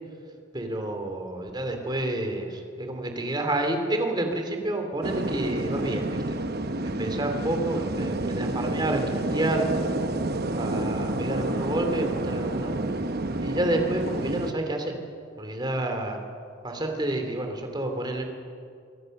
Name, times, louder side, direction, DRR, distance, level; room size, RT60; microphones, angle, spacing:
voice 1, 0.5-6.4 6.8-9.9 10.5-12.7 13.4-14.9 15.4-16.2 16.6-18.2, right 1 dB, 20° right, 4 dB, 2.9 m, -29 dB
sound 1, 5.0-14.5, right 2 dB, 45° right, 1.0 m, -29 dB
25.5 x 22.5 x 6.7 m, 2.3 s
head